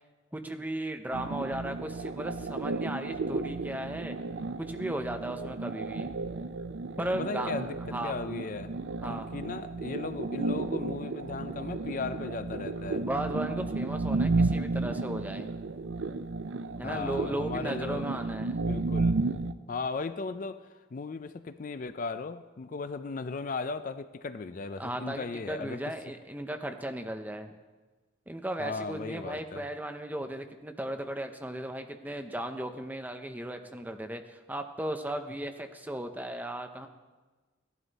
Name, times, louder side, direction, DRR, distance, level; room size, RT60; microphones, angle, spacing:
voice 1, 0.3-4.2 4.7-6.1 7.0-7.5 7.9-8.2 9.0-9.3 13.0-15.5 16.8-18.6 24.8-27.5 28.3-36.9, right 1 dB, 10° right, 6 dB, 0.6 m, -36 dB
sound 1, 1.1-19.5, right 3 dB, 65° right, 0.5 m, -33 dB
voice 2, 7.2-7.8 8.0-8.7 9.1-13.1 16.8-18.2 18.6-19.2 19.7-25.8 28.6-29.6, left 4 dB, 40° left, 11 dB, 0.4 m, -37 dB
15.5 x 11.0 x 4.1 m, 1.3 s
head